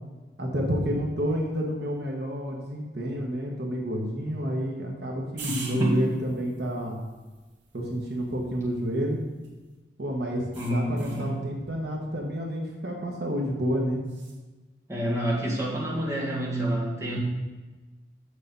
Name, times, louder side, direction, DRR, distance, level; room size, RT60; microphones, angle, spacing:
voice 1, 0.4-7.0 7.7-9.2 10.0-14.0, equal, 60° right, -1 dB, 1.4 m, -29 dB
voice 2, 5.4-6.0 10.5-11.4 14.9-17.2, right 1 dB, 15° right, -4 dB, 1.8 m, -28 dB
sound 1, 5.4-9.8 10.5-11.3 14.0-14.4, right 4 dB, 85° right, 1.6 m, -45 dB
6.8 x 6.7 x 5.4 m, 1.2 s
head